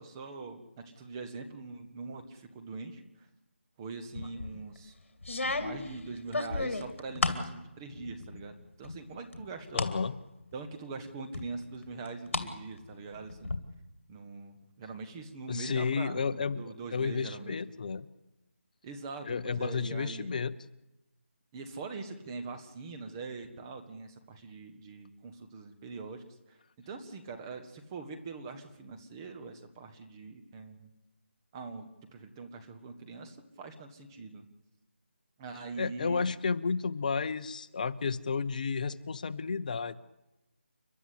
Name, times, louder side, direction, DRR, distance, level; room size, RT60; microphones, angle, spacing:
voice 1, 0.0-3.3 3.8-4.9 5.4-9.9 10.5-13.5 14.1-17.6 18.8-20.3 21.5-30.9 31.5-34.4 35.4-36.3, right 4 dB, 20° right, 5 dB, 1.5 m, -43 dB
sound 1, 4.2-4.6 5.2-7.5 7.9-8.5 8.8-10.0 10.4-10.5 11.3-12.5 12.8-13.6, left 3 dB, 65° left, 2.7 m, -33 dB
voice 2, 9.7-10.1 15.5-16.6 16.9-18.1 19.2-20.5 35.8-40.0, left 5 dB, 35° left, 12 dB, 0.8 m, -32 dB
30.0 x 12.0 x 8.6 m, 0.97 s
figure-of-eight pair, 165°, 7 cm